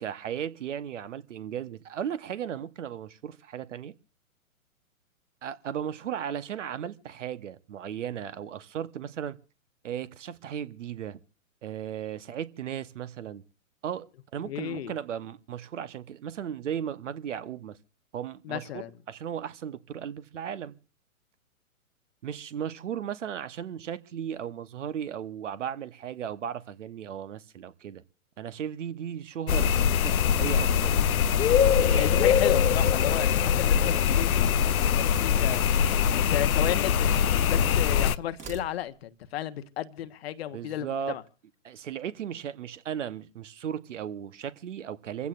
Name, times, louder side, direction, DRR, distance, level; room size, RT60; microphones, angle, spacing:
voice 1, 0.0-3.9 5.4-9.4 9.8-11.2 11.6-13.4 13.8-17.8 18.1-20.7 22.2-28.0 28.4-31.1 31.5-32.2 40.5-41.2 41.6-45.3, right 9 dB, 55° right, 1.1 m, -36 dB
voice 2, 14.4-14.9 18.4-18.9 31.9-35.6 36.2-41.2, left 12 dB, 45° left, 1.1 m, -33 dB
sound 1, 29.5-38.2, left 8 dB, 75° left, 0.6 m, -23 dB
sound 2, 38.2-39.2, right 6 dB, 15° right, 1.7 m, -49 dB
27.0 x 15.5 x 2.5 m
figure-of-eight pair, 120°, 42 cm